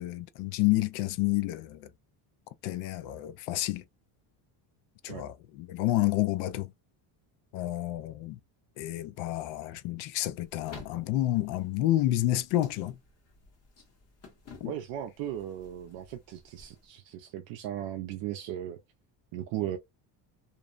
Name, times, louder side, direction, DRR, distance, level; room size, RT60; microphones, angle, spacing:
voice 1, 0.0-1.9 2.6-3.8 5.0-6.7 7.5-8.4 8.8-13.0 14.6-14.7, left 15 dB, 75° left, 0.5 m, -29 dB
sound 1, 10.4-16.9, left 3 dB, 30° left, 0.8 m, -53 dB
voice 2, 14.6-18.8 19.3-19.8, right 11 dB, 65° right, 0.5 m, -37 dB
2.6 x 2.0 x 2.4 m
cardioid pair, 155°, 47 cm